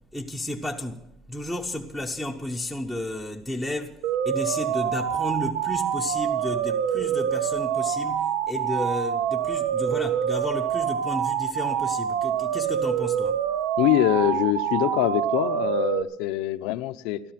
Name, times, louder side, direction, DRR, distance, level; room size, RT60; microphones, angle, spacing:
voice 1, 0.1-4.0 4.2-13.5, left 1 dB, 5° right, 1.0 m, -32 dB
sound 1, 4.0-16.0, right 8 dB, 85° right, 0.8 m, -26 dB
voice 2, 13.8-17.2, left 14 dB, 80° left, 0.7 m, -24 dB
15.5 x 12.5 x 5.9 m
cardioid pair, 120°, 0 cm